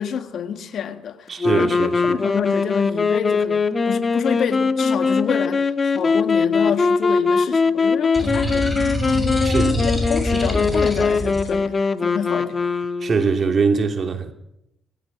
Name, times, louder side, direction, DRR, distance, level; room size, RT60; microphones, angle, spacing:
voice 1, 0.0-1.3 1.6-8.7 9.1-9.6 9.8-12.5, left 7 dB, 65° left, 1.7 m, -28 dB
voice 2, 1.3-2.2 8.3-8.6 9.4-9.9 13.0-14.3, right 4 dB, 45° right, 2.8 m, -22 dB
sound 1, 1.4-13.3, left 4 dB, 35° left, 1.3 m, -21 dB
sound 2, 8.1-11.5, left 1 dB, ahead, 6.7 m, -25 dB
20.0 x 16.0 x 8.6 m
cardioid pair, 90°, 0 cm